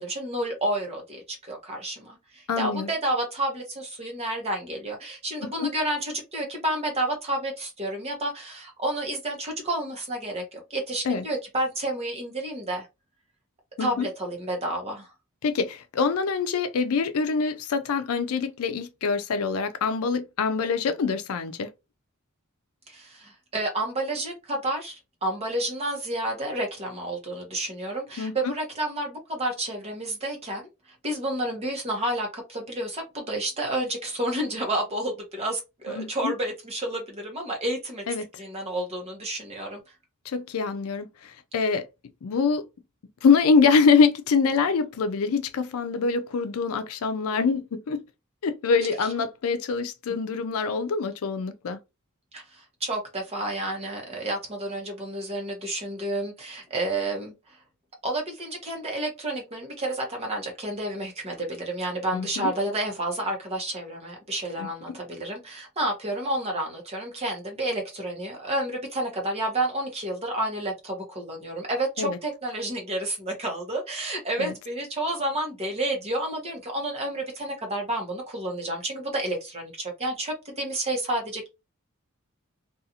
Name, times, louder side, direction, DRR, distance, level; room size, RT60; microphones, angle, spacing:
voice 1, 0.0-12.9 13.8-15.1 22.9-30.6 31.0-38.0 38.4-39.8 52.3-57.3 58.0-81.5, right 1 dB, 30° right, 0.9 m, -30 dB
voice 2, 2.5-2.9 5.4-5.7 11.0-11.2 13.8-14.1 15.4-21.7 28.2-28.5 35.9-36.3 38.1-38.3 40.3-41.8 42.2-42.6 43.2-48.0 48.4-51.8 62.1-62.5 64.6-65.0 72.0-72.2 74.4-74.5, left 5 dB, 75° left, 0.4 m, -25 dB
2.5 x 2.3 x 2.8 m
head